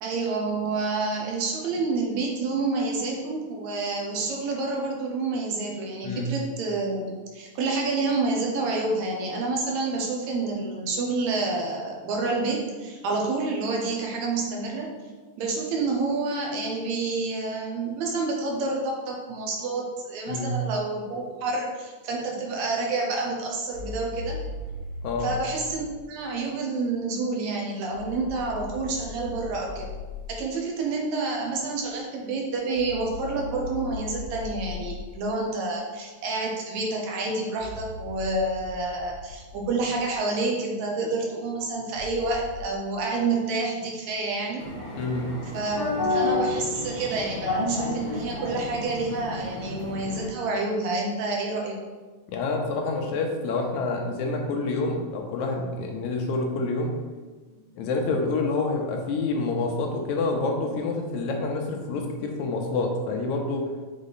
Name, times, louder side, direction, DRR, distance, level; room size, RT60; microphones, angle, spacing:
voice 1, 0.0-14.9 15.4-24.4 25.2-29.9 30.3-44.6 45.5-51.8, right 3 dB, 70° right, 0 dB, 2.0 m, -28 dB
voice 2, 20.3-20.6 25.0-25.3 45.0-45.3 52.3-56.9 57.8-63.6, left 3 dB, 75° left, 2 dB, 2.0 m, -27 dB
sound 1, 23.7-26.0 27.9-30.4 32.7-35.3 37.5-40.1 41.9-42.6, left 3 dB, 90° right, 2.9 m, -39 dB
sound 2, 44.6-50.2, left 2 dB, 60° left, 0.5 m, -30 dB
6.3 x 4.1 x 4.0 m, 1.3 s
omnidirectional pair, 3.5 m